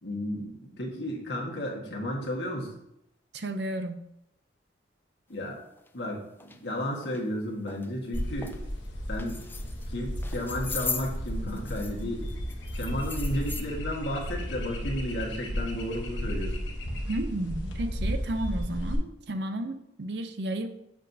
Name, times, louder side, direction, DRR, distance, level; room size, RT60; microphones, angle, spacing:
voice 1, 0.0-2.7 5.3-5.6 5.9-8.5 9.1-9.5 9.9-12.3 12.7-16.6, equal, 65° left, -2 dB, 1.5 m, -33 dB
voice 2, 3.3-4.0 17.1-20.7, right 1 dB, 60° right, 8 dB, 0.6 m, -32 dB
sound 1, 5.8-5.9 6.4-6.6 7.0-7.2 7.7-7.9 8.1-8.6 9.1-9.9 10.1-12.0 12.3-13.6, left 5 dB, 10° left, 0.3 m, -38 dB
sound 2, 8.1-19.0, equal, 85° left, 1.1 m, -34 dB
7.5 x 6.0 x 2.7 m, 0.82 s
head